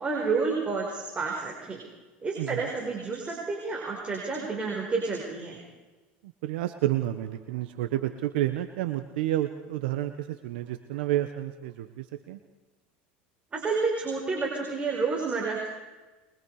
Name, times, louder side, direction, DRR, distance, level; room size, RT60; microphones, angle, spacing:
voice 1, 0.0-1.8 2.2-5.6 13.5-15.6, right 4 dB, 20° right, -1 dB, 5.2 m, -30 dB
voice 2, 6.2-12.4, right 14 dB, 80° right, 8 dB, 1.4 m, -30 dB
23.5 x 23.5 x 5.0 m, 1.2 s
supercardioid pair, 110°, 5 cm